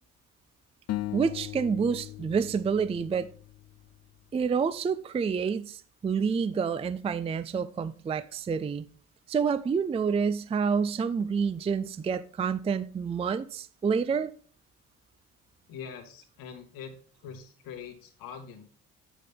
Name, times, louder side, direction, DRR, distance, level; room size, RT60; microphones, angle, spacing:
sound 1, 0.9-4.1, left 16 dB, 45° left, 0.4 m, -38 dB
voice 1, 1.1-3.3 4.3-8.9 9.3-14.3, right 6 dB, 15° right, 0.4 m, -28 dB
voice 2, 15.7-17.0 17.2-18.6, left 7 dB, 70° left, 1.6 m, -43 dB
6.5 x 6.3 x 3.5 m
hypercardioid pair, 60°, 36 cm